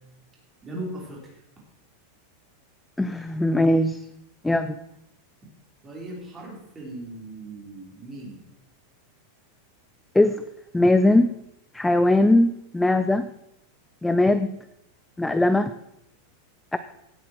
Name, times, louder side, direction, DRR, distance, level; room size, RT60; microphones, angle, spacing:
voice 1, 0.6-1.4 5.8-8.4, right 1 dB, 15° right, -3 dB, 3.8 m, -38 dB
voice 2, 3.0-4.0 4.4-4.8 10.1-10.4 10.7-11.3 11.7-13.3 14.0-14.6 15.2-15.7 16.7-16.8, left 1 dB, 5° left, 11 dB, 0.3 m, -20 dB
16.5 x 8.0 x 4.5 m, 0.82 s
supercardioid pair, 170°, 0 cm